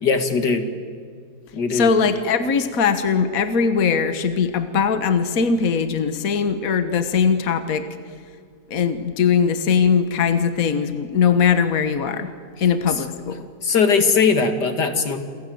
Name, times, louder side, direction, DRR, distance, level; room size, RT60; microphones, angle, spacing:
voice 1, 0.0-0.7 1.5-1.9 12.6-12.7 13.6-15.2, left 5 dB, 85° left, 8 dB, 2.7 m, -19 dB
voice 2, 1.7-7.9 8.7-12.3 12.6-13.5, left 6 dB, 60° left, 10 dB, 1.7 m, -20 dB
29.0 x 24.0 x 7.9 m, 2.1 s
omnidirectional pair, 1.8 m